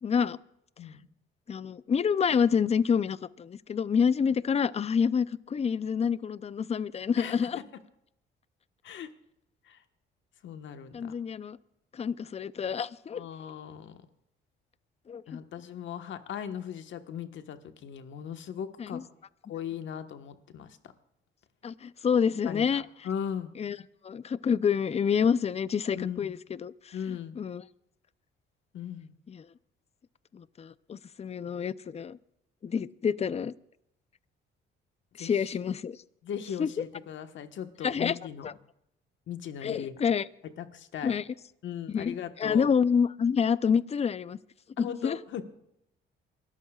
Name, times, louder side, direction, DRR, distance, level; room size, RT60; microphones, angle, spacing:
voice 1, 0.0-0.4 1.5-7.6 10.9-11.6 11.9-13.2 15.1-15.4 18.8-19.0 21.6-22.8 23.6-23.8 24.0-26.9 27.4-27.6 29.3-29.4 30.3-32.2 32.6-33.5 35.2-36.0 36.6-36.8 37.8-38.2 38.4-38.5 39.6-40.3 41.0-41.2 41.9-44.4 44.8-45.2, left 6 dB, 30° left, 17 dB, 0.5 m, -28 dB
voice 2, 0.8-1.1 7.2-7.5 8.8-9.1 9.6-9.8 10.4-11.1 13.1-14.0 15.3-19.0 19.5-20.8 22.4-23.5 25.9-26.4 26.9-27.4 28.7-29.1 35.2-35.5 36.2-38.5 39.3-40.0 40.6-41.1 41.6-42.7 44.8-45.4, left 8 dB, 70° left, 8 dB, 1.3 m, -38 dB
28.0 x 14.0 x 2.4 m, 0.81 s
cardioid pair, 90°, 20 cm